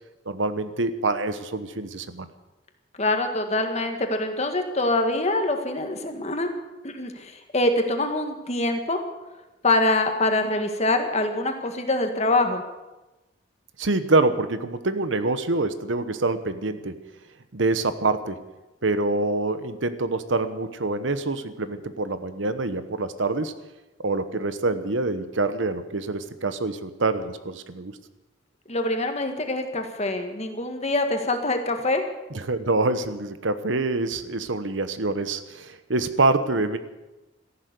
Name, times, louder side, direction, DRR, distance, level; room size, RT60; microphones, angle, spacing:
voice 1, 0.3-2.3 13.8-16.9 17.5-18.4 18.8-23.5 24.0-27.9 32.3-36.8, right 2 dB, 80° right, 11 dB, 1.1 m, -26 dB
voice 2, 3.0-6.5 6.8-9.0 9.6-12.6 28.7-32.0, left 2 dB, 35° left, 5 dB, 1.7 m, -24 dB
14.0 x 11.5 x 8.1 m, 1.1 s
head